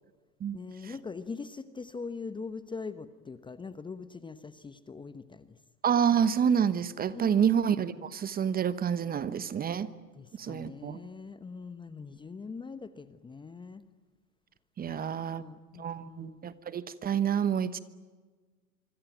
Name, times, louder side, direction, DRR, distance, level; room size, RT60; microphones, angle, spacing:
voice 1, 0.5-5.6 7.1-7.4 10.2-13.8 14.8-16.4, left 4 dB, 10° left, 12 dB, 1.0 m, -42 dB
voice 2, 5.8-9.9 10.4-11.0 14.8-15.4 15.8-17.8, right 8 dB, 20° right, 15 dB, 1.1 m, -28 dB
25.5 x 25.5 x 9.3 m, 1.4 s
hypercardioid pair, 105°, 48 cm